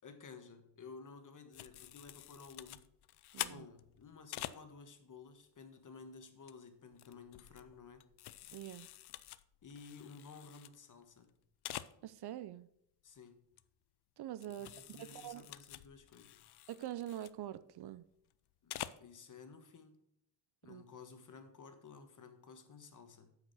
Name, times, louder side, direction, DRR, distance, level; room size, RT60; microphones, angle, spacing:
voice 1, 0.0-2.9 3.4-8.1 9.6-11.3 13.0-13.4 14.6-16.4 18.6-20.0 20.6-23.4, left 5 dB, 45° left, 1.4 m, -54 dB
sound 1, 1.5-4.6 6.2-6.5 6.9-10.7 11.0-11.1 11.3-11.4 11.6-11.9 13.6-13.7 14.4-17.3 18.5-19.0, left 14 dB, 65° left, 0.5 m, -47 dB
voice 2, 3.3-3.7 8.5-8.9 12.0-12.7 14.2-15.5 16.7-18.1 20.6-20.8, right 12 dB, 65° right, 0.6 m, -45 dB
8.6 x 5.1 x 6.1 m
cardioid pair, 90°, 43 cm